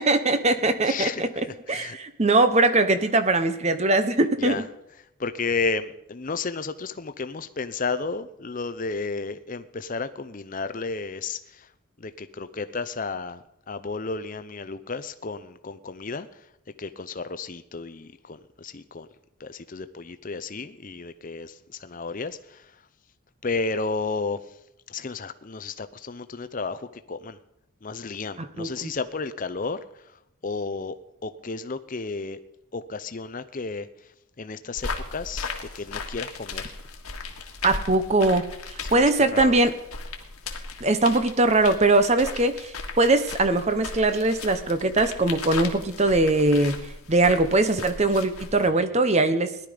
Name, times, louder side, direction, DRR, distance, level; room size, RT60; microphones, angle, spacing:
voice 1, 0.0-1.3 1.7-4.6 28.4-28.9 37.6-39.7 40.8-46.8 47.1-49.7, right 2 dB, 30° right, 10 dB, 0.8 m, -21 dB
voice 2, 0.8-2.0 4.4-4.6 5.2-11.7 12.0-16.3 16.8-19.1 19.4-22.7 23.4-24.4 24.9-27.4 27.8-29.8 30.4-31.0 31.2-32.4 32.7-33.9 34.4-36.7 38.8-39.5 48.6-48.7, left 4 dB, 35° left, 11 dB, 0.6 m, -32 dB
sound 1, 34.8-48.7, left 4 dB, 85° left, 1.9 m, -37 dB
18.0 x 11.5 x 5.1 m, 0.81 s
head